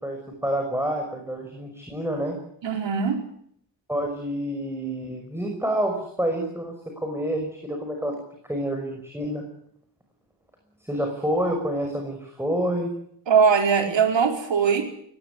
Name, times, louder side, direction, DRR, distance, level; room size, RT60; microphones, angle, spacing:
voice 1, 0.0-2.4 3.9-8.1 8.5-9.4 10.8-12.9, right 1 dB, 5° right, 2 dB, 5.8 m, -28 dB
voice 2, 2.6-3.2 13.3-14.8, right 6 dB, 80° right, 4 dB, 4.9 m, -20 dB
20.0 x 17.5 x 9.8 m, 0.68 s
wide cardioid pair, 110°, 44 cm